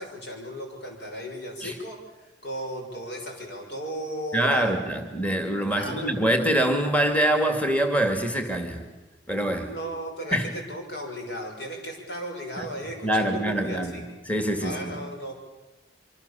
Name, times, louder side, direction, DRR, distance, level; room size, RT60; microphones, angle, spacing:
voice 1, 0.0-4.8 5.7-6.1 9.6-14.0 14.6-15.3, equal, 60° left, 2 dB, 6.2 m, -36 dB
voice 2, 4.3-8.8 9.3-9.7 10.3-10.5 12.6-12.7 13.0-14.0 14.3-15.0, right 1 dB, 5° left, 5 dB, 2.2 m, -24 dB
25.5 x 25.0 x 7.0 m, 1.1 s
head